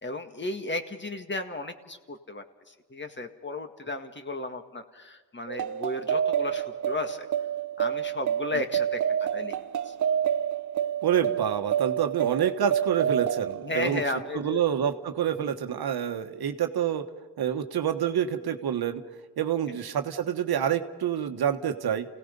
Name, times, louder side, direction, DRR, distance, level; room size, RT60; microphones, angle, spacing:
voice 1, 0.0-7.3 7.8-9.9 13.6-14.6 15.4-15.5 19.7-19.8, left 2 dB, 25° left, 6 dB, 1.9 m, -34 dB
sound 1, 5.5-14.5, right 9 dB, 45° right, 0.6 m, -29 dB
voice 2, 11.0-14.0 14.3-17.0 17.4-19.0 19.4-22.1, right 9 dB, 65° right, 7 dB, 1.3 m, -27 dB
28.5 x 17.5 x 5.3 m, 1.3 s
cardioid pair, 70°, 41 cm